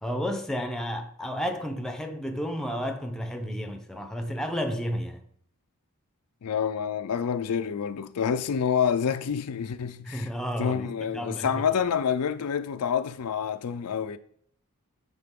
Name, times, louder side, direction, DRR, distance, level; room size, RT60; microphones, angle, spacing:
voice 1, 0.0-5.2 10.1-11.6, equal, ahead, 0.6 m, -32 dB
voice 2, 6.4-10.3 10.6-14.2, left 7 dB, 90° left, 0.5 m, -28 dB
9.7 x 3.8 x 3.6 m
head